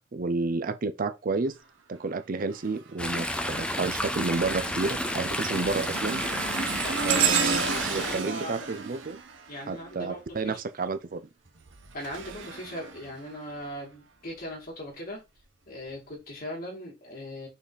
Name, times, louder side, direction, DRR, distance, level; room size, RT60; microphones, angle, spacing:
voice 1, 0.1-1.6 1.9-6.2 7.0-9.2 9.7-11.3, right 3 dB, 50° right, 0.6 m, -31 dB
sound 1, 2.5-2.9 3.4-10.2 11.5-13.7 14.3-14.5 15.4-15.5, right 6 dB, 80° right, 1.1 m, -32 dB
Chatter / Stream, 3.0-8.2, left 1 dB, 5° left, 0.7 m, -31 dB
voice 2, 6.8-8.7 9.5-10.6 11.9-15.2 15.7-17.5, equal, 50° left, 3.1 m, -39 dB
5.8 x 4.1 x 4.0 m
head